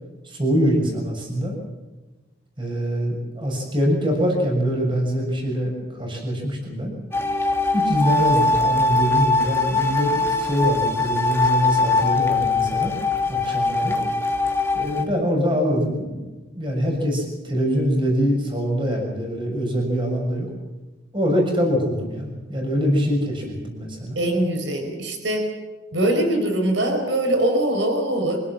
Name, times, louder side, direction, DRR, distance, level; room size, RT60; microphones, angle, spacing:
voice 1, 0.2-1.6 2.6-6.9 7.7-12.9 13.3-14.0 14.7-16.3 16.5-20.5 21.1-24.2, equal, 25° right, 0 dB, 6.8 m, -24 dB
sound 1, 7.1-15.0, left 3 dB, 15° left, 2.0 m, -21 dB
voice 2, 24.1-25.5 25.9-28.4, right 1 dB, 80° right, 4 dB, 4.8 m, -22 dB
25.5 x 17.0 x 7.5 m, 1.2 s
head